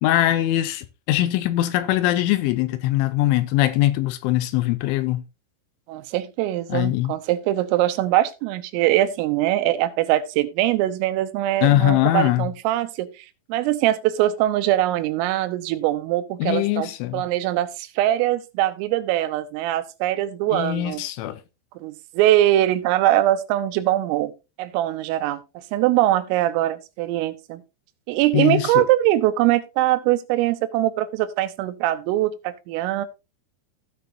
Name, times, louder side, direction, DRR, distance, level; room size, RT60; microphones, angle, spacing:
voice 1, 0.0-5.2 6.7-7.1 11.6-12.5 16.4-17.2 20.5-21.4 28.3-28.9, left 14 dB, 80° left, 3.0 m, -21 dB
voice 2, 5.9-13.3 13.5-21.0 21.8-24.3 24.6-27.6 28.1-33.1, right 14 dB, 90° right, 3.5 m, -22 dB
16.5 x 6.0 x 2.7 m
omnidirectional pair, 5.8 m